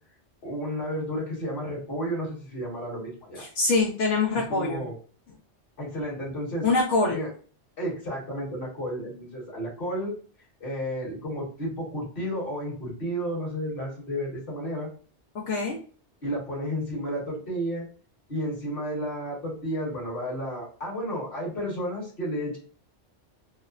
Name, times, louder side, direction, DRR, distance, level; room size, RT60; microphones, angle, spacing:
voice 1, 0.4-3.4 4.5-4.9 5.8-6.7 7.1-7.3 7.8-10.1 10.6-14.9 16.2-17.9 18.3-22.6, equal, 50° left, -4 dB, 1.4 m, -32 dB
voice 2, 3.4-4.8 6.6-7.2 15.3-15.8, left 3 dB, 85° left, -3 dB, 1.0 m, -24 dB
3.0 x 2.0 x 2.4 m, 0.41 s
omnidirectional pair, 1.2 m